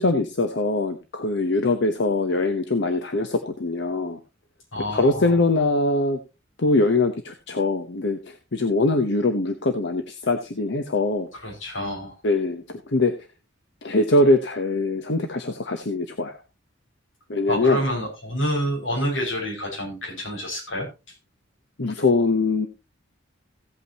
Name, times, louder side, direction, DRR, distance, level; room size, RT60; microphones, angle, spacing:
voice 1, 0.0-4.2 4.9-6.2 6.6-11.3 12.2-13.1 13.8-16.4 17.3-17.8 21.8-22.7, left 2 dB, 65° left, 6 dB, 1.0 m, -22 dB
voice 2, 4.7-5.4 11.4-12.1 17.5-20.9, equal, 85° left, -1 dB, 5.9 m, -28 dB
16.0 x 8.4 x 2.9 m, 0.27 s
head